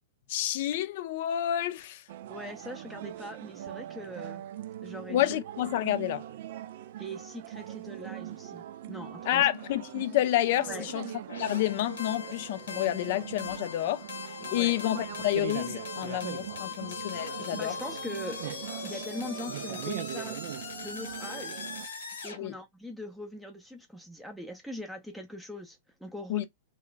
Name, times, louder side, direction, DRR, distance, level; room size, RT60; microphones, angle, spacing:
voice 1, 0.3-2.0 5.1-6.2 9.3-11.1 11.4-14.0 14.5-17.7 22.4-22.5 26.3-26.4, left 13 dB, 55° left, 0.5 m, -29 dB
sound 1, 2.1-21.9, right 12 dB, 60° right, 0.4 m, -41 dB
voice 2, 2.3-4.4 4.8-5.4 7.0-9.5 10.7-10.9 14.5-14.8 17.5-18.5 18.8-20.4 20.8-21.7 22.2-26.4, left 1 dB, ahead, 0.5 m, -41 dB
sound 2, 11.3-22.4, left 5 dB, 85° left, 0.9 m, -41 dB
2.4 x 2.2 x 3.8 m
hypercardioid pair, 115°, 0 cm